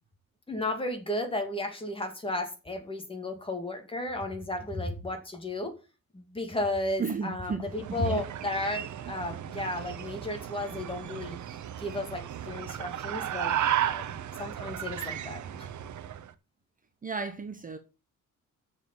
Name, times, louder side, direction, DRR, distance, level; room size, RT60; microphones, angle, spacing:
voice 1, 0.5-5.7 6.1-11.4 11.8-13.6 13.9-14.0 14.4-15.7, left 1 dB, 15° left, 2.4 m, -33 dB
voice 2, 7.0-8.2 17.0-17.8, right 5 dB, 25° right, 0.9 m, -34 dB
sound 1, 7.7-16.3, right 10 dB, 65° right, 0.9 m, -34 dB
7.3 x 6.6 x 7.1 m
wide cardioid pair, 150°, 32 cm